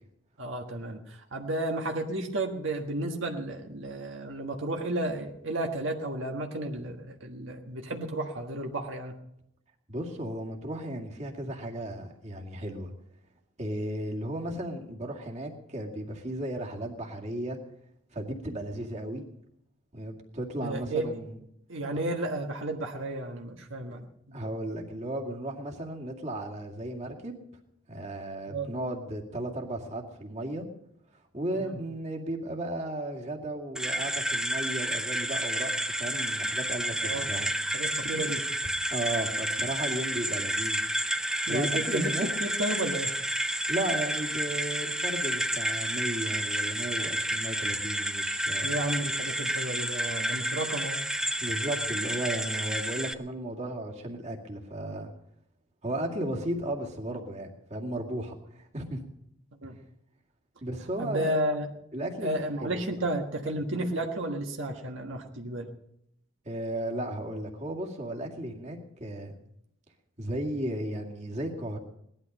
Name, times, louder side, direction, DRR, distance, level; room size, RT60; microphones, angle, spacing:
voice 1, 0.4-9.1 20.6-21.1 21.7-24.5 28.5-28.7 31.5-31.8 37.0-37.3 37.7-38.5 41.5-42.1 42.4-43.1 48.6-51.0 59.6-59.8 61.0-61.7 62.2-65.7, right 1 dB, 75° right, 2 dB, 1.5 m, -32 dB
voice 2, 9.9-12.9 13.6-17.6 18.1-19.2 19.9-21.4 24.3-27.4 27.9-30.7 31.3-37.5 38.9-40.8 41.5-42.3 43.7-48.7 51.4-55.1 55.8-59.0 60.6-61.4 61.9-62.8 63.7-63.9 66.4-69.4 70.2-71.8, right 1 dB, 35° right, 0 dB, 2.2 m, -35 dB
sound 1, 33.8-53.1, right 1 dB, 5° right, 0.6 m, -30 dB
18.5 x 12.0 x 5.4 m, 0.76 s
head